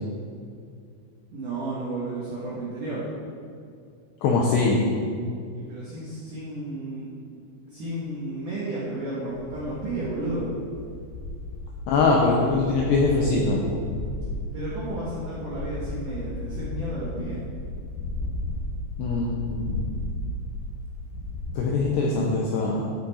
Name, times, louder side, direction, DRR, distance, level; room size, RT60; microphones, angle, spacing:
voice 1, 1.3-3.1 5.7-7.1 7.3-7.4 7.7-10.5 14.5-17.4, right 2 dB, 75° right, -7 dB, 1.9 m, -32 dB
voice 2, 4.2-4.9 11.9-13.6 19.0-19.8 21.6-22.8, left 3 dB, 80° left, -2 dB, 2.4 m, -22 dB
sound 1, 9.3-21.6, left 2 dB, 60° left, 3.5 m, -34 dB
14.0 x 6.4 x 4.2 m, 2.3 s
omnidirectional pair, 5.9 m